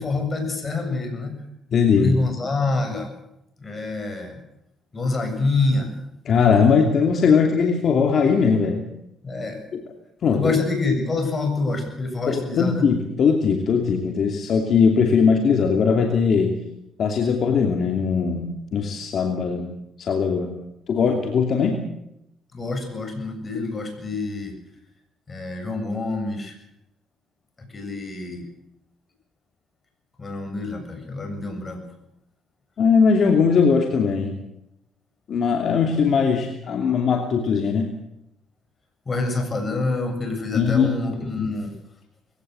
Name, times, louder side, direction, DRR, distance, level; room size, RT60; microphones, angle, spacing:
voice 1, 0.0-1.4 1.9-3.1 3.6-4.4 4.9-5.9 9.2-9.6 10.4-12.9 22.5-24.6 25.3-26.6 27.7-28.5 30.2-31.8 39.1-41.7, left 3 dB, 30° left, 5 dB, 7.3 m, -26 dB
voice 2, 1.7-2.2 6.3-8.8 10.2-10.5 12.3-16.5 17.0-19.7 20.0-20.5 20.9-21.8 32.8-34.3 35.3-37.9 40.5-40.9 41.4-41.5, left 6 dB, 55° left, 3 dB, 2.8 m, -20 dB
21.0 x 17.0 x 8.0 m, 0.82 s
cardioid pair, 90°, 0 cm